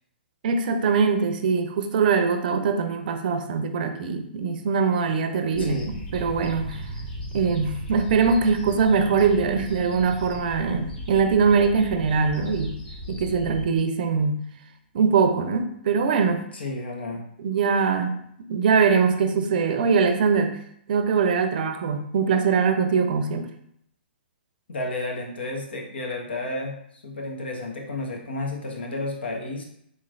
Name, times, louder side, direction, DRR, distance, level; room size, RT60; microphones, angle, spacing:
voice 1, 0.4-6.8 7.3-12.8 13.1-14.4 14.9-16.5 17.4-18.2 18.5-20.6 20.9-23.5, right 5 dB, 55° right, 7 dB, 0.5 m, -22 dB
sound 1, 5.5-13.6, equal, 50° left, 1.5 m, -36 dB
voice 2, 5.6-5.9 16.5-17.2 24.7-26.8 27.0-29.6, left 2 dB, 75° left, 1 dB, 1.0 m, -31 dB
3.8 x 3.0 x 2.6 m, 0.71 s
hypercardioid pair, 130°, 6 cm